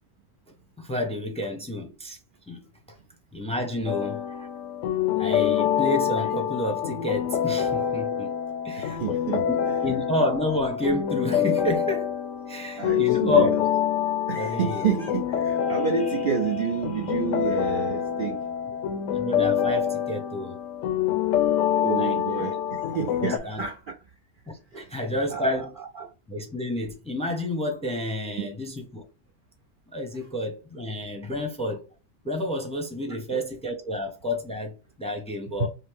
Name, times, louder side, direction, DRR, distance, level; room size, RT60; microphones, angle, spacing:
voice 1, 0.8-2.2 2.5-2.6 3.3-4.5 5.2-8.4 8.6-9.0 9.4-12.1 12.5-13.5 14.4-14.8 19.1-20.6 22.0-22.6 23.2-23.6 24.5-25.7 26.3-29.0 29.9-31.8 32.2-34.7 35.0-35.7, left 1 dB, 5° left, 0.7 m, -30 dB
sound 1, 3.9-23.4, left 9 dB, 80° left, 0.9 m, -26 dB
voice 2, 8.8-9.8 12.8-13.6 14.3-18.5 21.8-24.0 24.7-26.1 28.4-28.5 30.2-30.3 33.1-33.4 35.6-35.7, right 7 dB, 55° right, 0.6 m, -30 dB
5.5 x 2.0 x 3.4 m
omnidirectional pair, 1.3 m